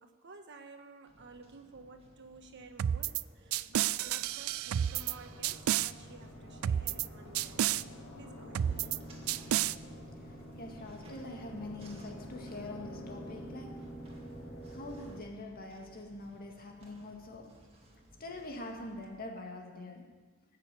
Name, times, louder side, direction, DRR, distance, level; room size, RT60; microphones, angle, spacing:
voice 1, 0.0-8.9, right 3 dB, 60° right, 5 dB, 1.3 m, -53 dB
sound 1, 1.1-19.2, right 1 dB, 30° right, 2.1 m, -59 dB
sound 2, 2.8-3.2 3.5-5.1 5.4-5.9 6.6-7.1 7.4-7.8 8.6-9.0 9.3-9.8, right 11 dB, 85° right, 0.4 m, -30 dB
sound 3, 4.6-15.2, equal, 70° left, 4.0 m, -47 dB
voice 2, 10.1-14.4 14.7-20.3, left 2 dB, 45° left, 2 dB, 2.0 m, -45 dB
19.5 x 6.8 x 8.3 m, 1.3 s
head